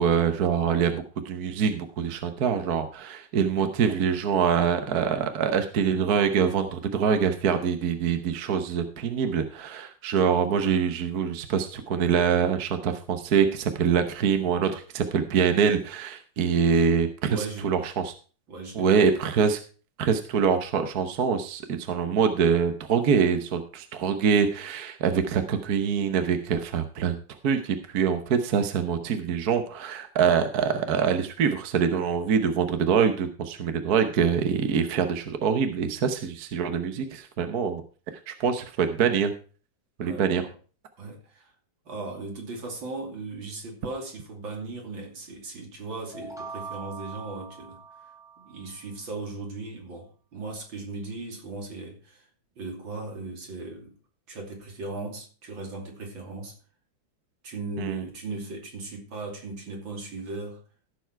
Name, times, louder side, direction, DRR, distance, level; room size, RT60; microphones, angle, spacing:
voice 1, 0.0-18.1 18.7-19.6 20.0-27.2 27.4-37.8 38.3-39.3 40.0-40.4 57.8-58.0, right 7 dB, 55° right, 1.4 m, -24 dB
voice 2, 17.3-17.7 18.5-19.2 40.0-40.5 41.0-41.5 41.9-47.8 48.4-52.3 52.6-53.9 54.3-56.6 57.4-60.6, right 3 dB, 80° right, 3.6 m, -37 dB
sound 1, 46.1-48.9, right 4 dB, ahead, 1.3 m, -42 dB
15.0 x 7.1 x 4.6 m
omnidirectional pair, 2.1 m